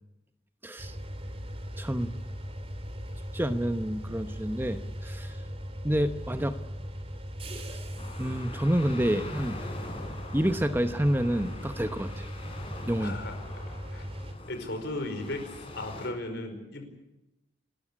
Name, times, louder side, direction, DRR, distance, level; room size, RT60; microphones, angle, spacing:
voice 1, 0.6-1.0 1.8-2.2 3.3-5.4 5.8-6.6 7.7-7.8 8.2-9.6 10.3-12.3 12.9-13.1, equal, 10° right, 8 dB, 0.9 m, -28 dB
sound 1, 0.8-14.3, equal, 30° right, 2.8 m, -39 dB
sound 2, 8.0-16.1, left 1 dB, 30° left, 4.9 m, -43 dB
voice 2, 13.0-13.4 13.9-14.1 14.5-16.8, left 2 dB, 60° left, 6 dB, 4.9 m, -36 dB
27.5 x 14.0 x 10.0 m, 0.97 s
head